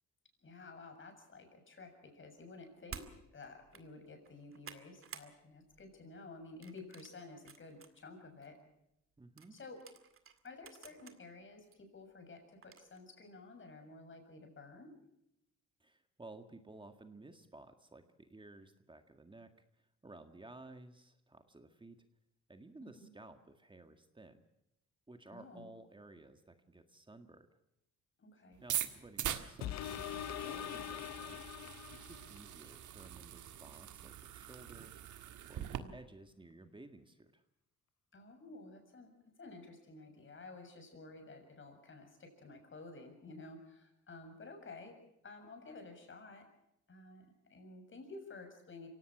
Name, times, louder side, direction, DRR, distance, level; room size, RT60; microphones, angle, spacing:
voice 1, 0.4-8.6 9.5-9.8 10.4-14.9 22.8-23.1 25.3-25.7 28.2-28.6 35.6-36.0 38.1-45.0 45.2-46.5 46.9-48.9, left 3 dB, 40° left, 5 dB, 7.0 m, -52 dB
sound 1, 2.9-3.1 3.6-3.8 4.2-5.3 5.7-6.0 6.6-7.9 8.4-8.5 9.4-11.2 11.7-11.8 12.6-13.0, right 6 dB, 45° right, 2.2 m, -52 dB
voice 2, 9.2-9.6 15.8-22.0 22.5-24.5 25.1-27.5 28.6-31.4 32.0-35.0 35.4-37.4, right 2 dB, 15° right, 7 dB, 1.8 m, -55 dB
sound 2, 28.6-35.8, right 11 dB, 75° right, 1.7 m, -43 dB
sound 3, 29.6-32.5 33.1-33.2, left 12 dB, 60° left, 0.7 m, -43 dB
25.5 x 17.5 x 6.1 m, 0.83 s
cardioid pair, 90°, 30 cm